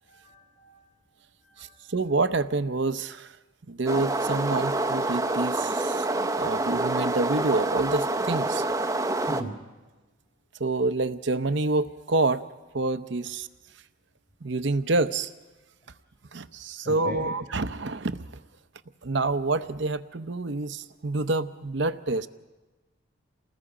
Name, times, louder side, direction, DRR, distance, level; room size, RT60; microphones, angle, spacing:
voice 1, 0.0-0.8 1.4-1.7 9.3-9.7 16.8-17.3, equal, 40° left, -1 dB, 3.9 m, -38 dB
voice 2, 1.6-3.4 3.7-8.7 10.6-12.4 12.7-13.5 14.4-15.3 16.3-18.2 19.0-22.3, right 3 dB, 55° right, 12 dB, 0.7 m, -27 dB
sound 1, 3.9-9.4, right 2 dB, 15° right, 0.7 m, -27 dB
28.5 x 19.5 x 5.0 m, 1.2 s
head